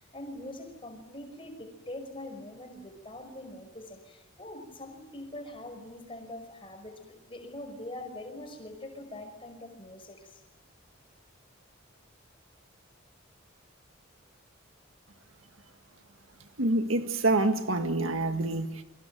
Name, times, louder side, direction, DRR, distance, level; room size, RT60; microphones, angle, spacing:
voice 1, 0.0-10.4, left 1 dB, 25° left, 5 dB, 5.6 m, -43 dB
voice 2, 16.6-18.8, right 2 dB, 80° right, 7 dB, 1.7 m, -27 dB
29.0 x 23.5 x 7.8 m, 0.97 s
head